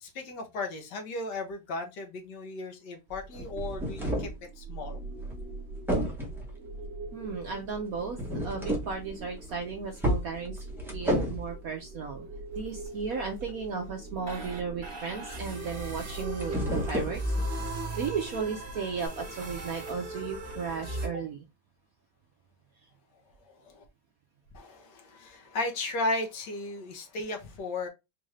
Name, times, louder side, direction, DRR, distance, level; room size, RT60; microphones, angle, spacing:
voice 1, 0.0-4.3 4.6-5.1 23.4-23.8 24.5-27.9, left 2 dB, 60° left, 1.5 m, -35 dB
sound 1, 3.1-4.4 5.3-5.5 5.9-6.5 8.1-9.0 9.4-9.6 10.0-11.6 16.0-17.6 19.0-19.1, equal, ahead, 0.8 m, -31 dB
sound 2, 3.5-21.1, right 1 dB, 35° right, 1.3 m, -39 dB
voice 2, 7.1-10.6 10.9-12.3 12.6-17.6 18.0-21.4, right 5 dB, 65° right, 0.9 m, -35 dB
4.5 x 2.6 x 3.2 m
omnidirectional pair, 2.2 m